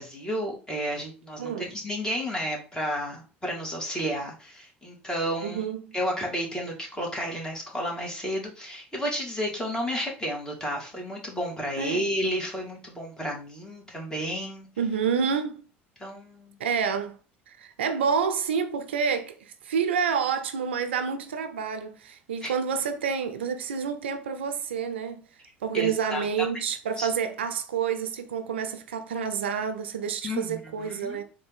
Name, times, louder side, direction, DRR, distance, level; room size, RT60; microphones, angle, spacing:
voice 1, 0.0-5.7 5.9-14.7 16.0-16.6 22.4-22.5 25.7-26.2 27.0-27.1 30.2-31.2, equal, 10° left, 1.9 m, -32 dB
voice 2, 1.4-1.7 5.4-5.9 11.8-12.1 14.8-15.6 16.6-17.2 17.5-25.3 25.6-31.2, right 6 dB, 85° right, 0.4 m, -28 dB
3.9 x 2.6 x 3.5 m
hypercardioid pair, 70°, 6 cm